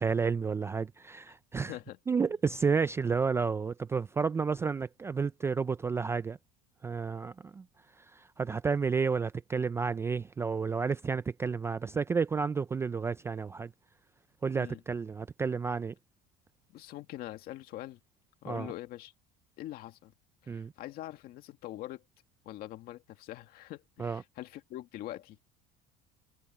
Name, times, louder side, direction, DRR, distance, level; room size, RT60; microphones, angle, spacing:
voice 1, 0.0-1.7 2.1-6.4 6.8-7.7 8.0-13.7 14.4-15.9 18.5-18.7 20.5-20.7 24.0-24.2, right 5 dB, 15° right, 0.3 m, -31 dB
voice 2, 1.7-2.0 14.6-14.8 16.7-18.0 18.4-19.1 19.6-20.1 20.4-22.0 22.5-25.4, left 15 dB, 55° left, 2.0 m, -43 dB
cardioid pair, 145°, 19 cm